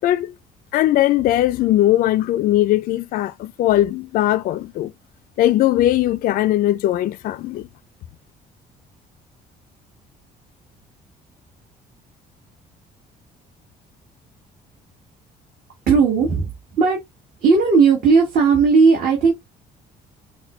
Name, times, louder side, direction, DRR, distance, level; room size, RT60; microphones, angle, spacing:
voice 1, 0.0-0.3 0.7-4.9 5.4-7.7, left 14 dB, 60° left, 0.4 m, -19 dB
voice 2, 15.9-16.5 16.8-17.0 17.4-19.3, right 5 dB, 60° right, 1.7 m, -15 dB
5.9 x 2.3 x 3.1 m
cardioid pair, 110°, 17 cm